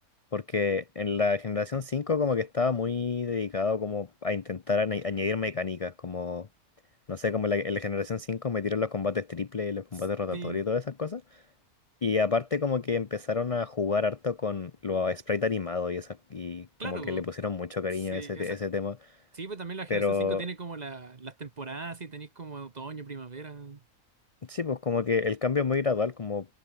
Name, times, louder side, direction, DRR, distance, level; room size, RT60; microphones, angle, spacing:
voice 1, 0.3-6.5 7.1-11.2 12.0-19.1 19.9-20.4 24.5-26.5, left 4 dB, 40° left, 0.5 m, -29 dB
voice 2, 10.3-10.6 16.8-17.2 17.9-18.6 19.3-23.8, right 4 dB, 30° right, 1.0 m, -39 dB
omnidirectional pair, 1.6 m